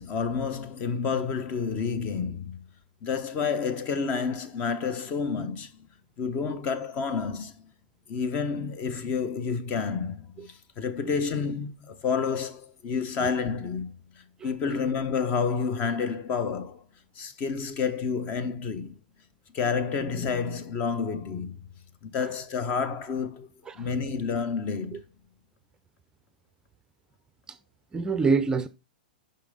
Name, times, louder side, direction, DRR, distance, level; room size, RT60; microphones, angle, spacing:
voice 1, 0.0-2.6 3.0-5.9 6.2-7.7 8.1-14.0 14.4-16.8 17.2-18.9 19.5-21.6 22.0-23.5 23.8-25.0, left 5 dB, 35° left, 1.1 m, -29 dB
voice 2, 14.4-14.7 22.2-22.3 23.7-23.9 24.9-25.0 27.5-27.6 27.9-28.7, right 4 dB, 15° right, 0.5 m, -27 dB
10.0 x 5.6 x 3.9 m
hypercardioid pair, 110°, 5 cm